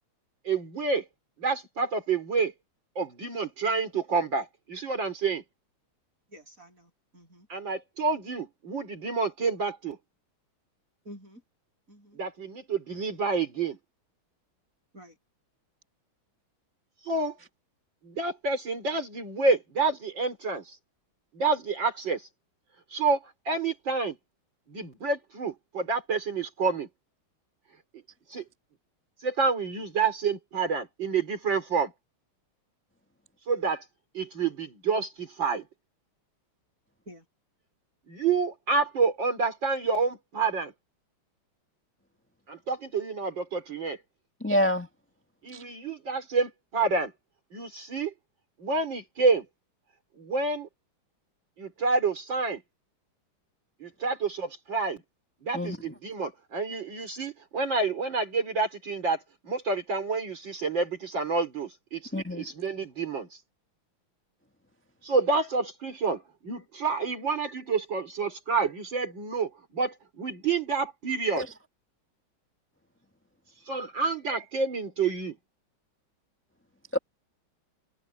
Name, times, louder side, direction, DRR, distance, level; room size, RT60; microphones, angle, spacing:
voice 1, 0.4-1.1 1.4-2.5 3.0-5.4 7.5-10.0 12.1-13.8 17.0-17.4 18.0-20.8 21.3-22.3 22.9-24.2 24.7-26.9 27.9-28.0 28.3-28.4 29.2-31.9 33.5-33.8 34.1-35.7 38.1-40.7 42.5-44.0 45.4-47.1 47.5-48.1 48.6-49.4 50.2-50.7 51.6-52.6 53.8-55.0 55.4-63.3 65.0-71.5 73.7-75.4, right 4 dB, 60° right, 4.6 m, -28 dB
voice 2, 6.3-7.5 11.0-11.4 11.9-12.2 14.9-15.2 37.0-37.2, equal, 40° right, 8.5 m, -49 dB
voice 3, 44.4-44.9 45.5-45.6 55.5-55.9 62.1-62.5 71.4-71.5 76.9-77.0, left 1 dB, 5° left, 1.3 m, -27 dB
omnidirectional pair, 2.3 m